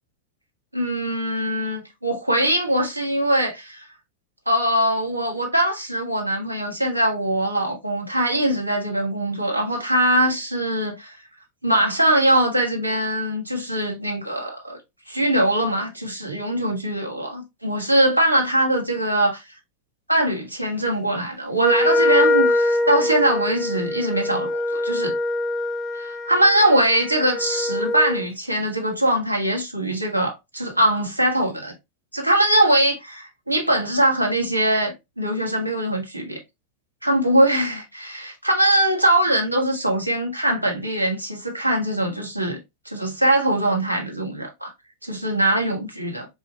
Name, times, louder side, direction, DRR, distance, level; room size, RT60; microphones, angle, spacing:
voice 1, 0.7-3.8 4.5-11.1 11.6-14.8 15.1-19.4 20.1-25.2 25.9-31.7 32.1-36.4 37.0-42.6 42.8-44.7 45.0-46.3, right 1 dB, 85° right, 1.1 m, -22 dB
Wind instrument woodwind instrument, 21.6-28.3, left 2 dB, 25° left, 0.4 m, -23 dB
4.2 x 2.4 x 2.8 m
figure-of-eight pair, 90°, 0 cm